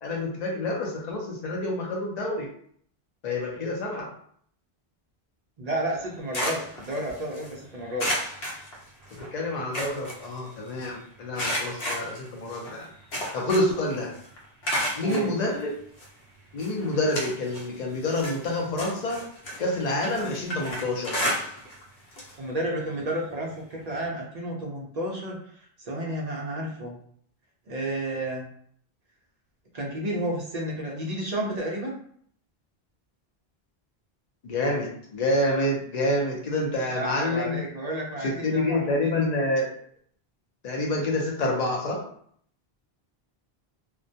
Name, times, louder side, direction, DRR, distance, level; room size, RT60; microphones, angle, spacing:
voice 1, 0.0-2.5 3.2-4.1 9.3-12.9 13.3-14.1 15.0-15.8 16.5-19.3 19.6-21.2 34.4-37.6 38.2-39.7 40.6-42.0, left 1 dB, 50° left, -1 dB, 0.6 m, -27 dB
voice 2, 5.6-8.1 15.0-15.3 22.4-27.0 27.7-28.5 29.7-32.0 36.9-39.1, right 1 dB, 50° right, -1 dB, 0.5 m, -31 dB
sound 1, 6.0-7.5 8.0-9.3 9.5-10.9 11.4-13.9 14.1-15.3 16.0-16.1 16.6-17.7 18.0-21.8 22.1-22.3 22.7-22.8 24.0-24.1, equal, 80° left, 1.0 m, -32 dB
2.2 x 2.2 x 2.6 m, 0.63 s
omnidirectional pair, 1.1 m